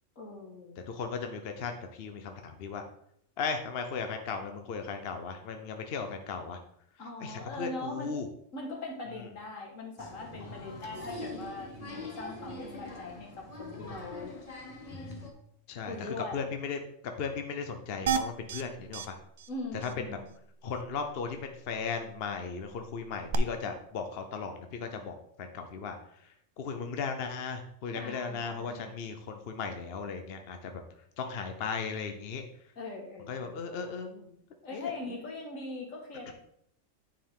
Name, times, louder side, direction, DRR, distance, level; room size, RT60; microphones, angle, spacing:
voice 1, 0.2-0.8 7.0-8.1 8.5-14.4 15.8-16.5 19.5-20.2 27.9-28.9 32.8-33.6 34.6-36.3, left 2 dB, 80° left, 0 dB, 2.0 m, -41 dB
voice 2, 0.9-2.8 3.4-6.6 7.0-8.3 15.7-16.8 17.0-19.2 19.7-20.2 20.6-30.8 31.2-32.4 33.3-34.4 34.7-35.2 36.3-36.4, left 5 dB, 55° left, 5 dB, 0.9 m, -37 dB
Applause, 10.0-15.3, left 2 dB, 30° left, 1.1 m, -43 dB
sound 1, 18.1-18.6 18.9-19.1 19.4-19.5 19.8-19.9 23.3-23.4, right 7 dB, 75° right, 0.3 m, -30 dB
10.0 x 4.6 x 3.7 m, 0.70 s
omnidirectional pair, 1.4 m